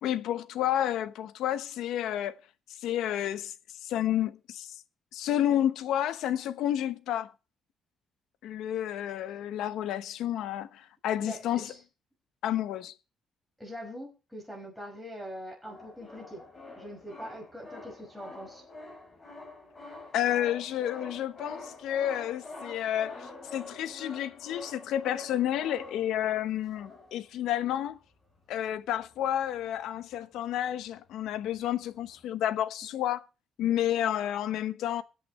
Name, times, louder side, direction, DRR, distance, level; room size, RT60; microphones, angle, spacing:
voice 1, 0.0-2.4 2.8-3.5 3.8-4.8 5.1-7.3 8.4-11.7 12.4-12.9 20.1-28.0 28.5-33.2 33.6-35.0, left 11 dB, 80° left, 1.0 m, -30 dB
voice 2, 11.2-11.8 13.6-16.4 16.7-18.6, equal, ahead, 5.6 m, -43 dB
sound 1, 15.6-27.4 27.9-28.0 28.2-28.4 28.9-30.2 30.5-32.2, left 2 dB, 20° left, 4.7 m, -46 dB
20.5 x 8.5 x 3.2 m
cardioid pair, 165°, 0 cm